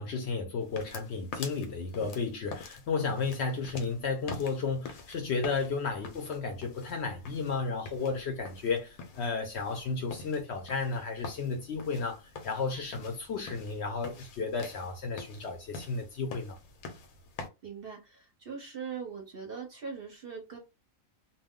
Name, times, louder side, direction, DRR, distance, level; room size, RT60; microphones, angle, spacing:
voice 1, 0.0-16.6, left 4 dB, 65° left, 0.7 m, -33 dB
sound 1, 0.6-17.5, left 4 dB, 90° left, 1.0 m, -46 dB
voice 2, 17.6-20.6, right 6 dB, 55° right, 0.7 m, -41 dB
2.3 x 2.2 x 3.5 m
omnidirectional pair, 1.5 m